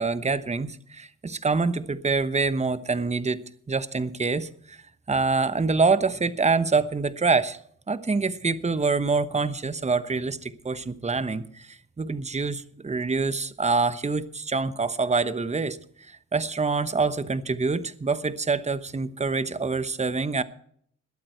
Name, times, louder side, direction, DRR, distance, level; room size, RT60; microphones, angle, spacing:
voice 1, 0.0-4.8 5.1-7.6 7.9-15.8 16.1-20.4, right 4 dB, 20° right, 13 dB, 1.0 m, -26 dB
20.5 x 8.7 x 4.6 m, 0.62 s
cardioid pair, 65°, 32 cm